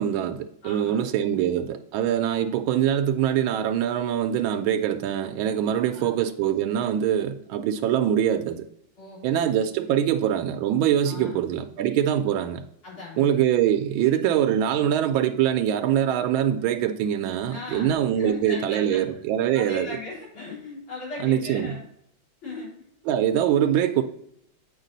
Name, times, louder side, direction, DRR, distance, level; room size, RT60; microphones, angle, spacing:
voice 1, 0.0-8.6 9.2-12.7 13.2-19.9 21.2-21.7 23.1-24.0, right 10 dB, 80° right, 1.3 m, -23 dB
voice 2, 0.6-1.5 2.3-2.6 5.7-6.1 9.0-10.1 11.0-11.4 12.8-13.3 17.5-19.0 19.5-21.8 22.4-22.7, left 2 dB, 80° left, 4.3 m, -39 dB
8.1 x 5.1 x 3.9 m
omnidirectional pair, 2.3 m